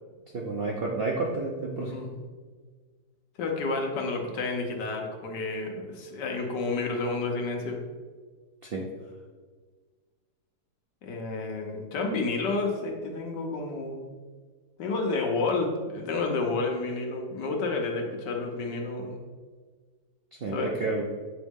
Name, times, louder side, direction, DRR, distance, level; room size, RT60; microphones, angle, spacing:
voice 1, 0.3-1.9 8.6-8.9 20.4-21.1, right 3 dB, 60° right, -1 dB, 0.6 m, -30 dB
voice 2, 1.8-2.1 3.4-7.8 11.0-14.1 14.8-19.2 20.5-20.7, left 3 dB, 75° left, 1 dB, 1.6 m, -30 dB
8.2 x 4.0 x 3.6 m, 1.5 s
omnidirectional pair, 1.9 m